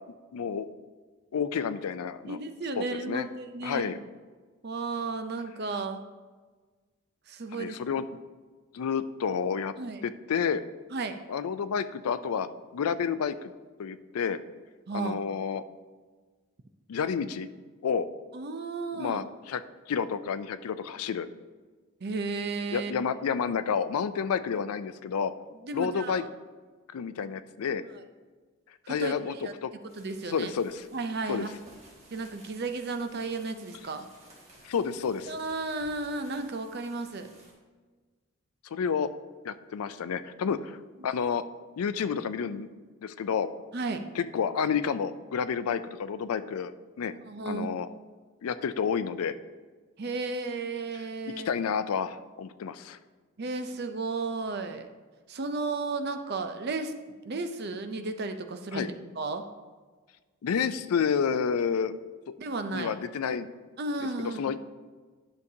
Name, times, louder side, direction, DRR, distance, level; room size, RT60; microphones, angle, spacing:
voice 1, 0.3-0.7 1.3-2.4 2.8-3.3 3.6-4.0 7.5-8.1 8.7-9.7 10.0-10.6 11.3-13.5 13.8-14.4 14.9-15.6 16.9-17.5 17.8-18.1 18.9-19.6 19.9-21.3 22.7-25.3 25.7-26.2 26.9-27.8 28.9-29.7 30.3-30.8 31.3-31.5 34.6-35.3 38.7-39.1 39.4-40.8 41.0-41.4 41.8-42.7 43.0-43.5 44.2-46.7 47.0-47.1 47.5-47.9 48.4-49.3 51.4-53.0 58.7-58.9 60.4-62.0 62.7-63.5 64.2-64.6, left 6 dB, 80° left, 13 dB, 0.4 m, -30 dB
voice 2, 2.3-4.0 4.6-6.0 7.3-7.8 9.8-10.0 10.9-11.2 14.9-15.2 18.3-19.2 22.0-23.1 25.6-26.3 27.9-28.0 28.8-29.5 30.0-30.5 30.9-31.5 32.1-34.1 35.3-37.3 40.4-40.6 41.0-41.1 43.7-44.1 47.3-47.7 50.0-51.5 53.4-54.9 55.3-56.9 57.2-59.4 62.4-63.0 63.8-64.6, right 3 dB, 45° right, 7 dB, 0.5 m, -34 dB
sound 1, 29.8-37.5, right 1 dB, 30° right, 1.8 m, -56 dB
11.0 x 6.5 x 2.7 m, 1.4 s
head